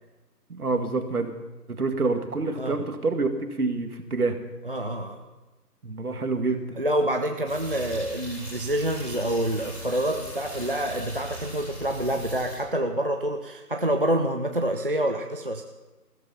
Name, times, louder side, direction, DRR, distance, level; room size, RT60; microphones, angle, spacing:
voice 1, 0.5-1.3 1.8-3.3 3.6-4.4 5.8-6.8, right 3 dB, 65° right, 6 dB, 2.0 m, -27 dB
voice 2, 4.6-5.3 6.8-15.6, right 1 dB, 35° right, 4 dB, 0.6 m, -27 dB
sound 1, 7.4-12.5, right 1 dB, 5° left, 2.1 m, -39 dB
15.0 x 13.5 x 5.6 m, 1.1 s
figure-of-eight pair, 170°, 47 cm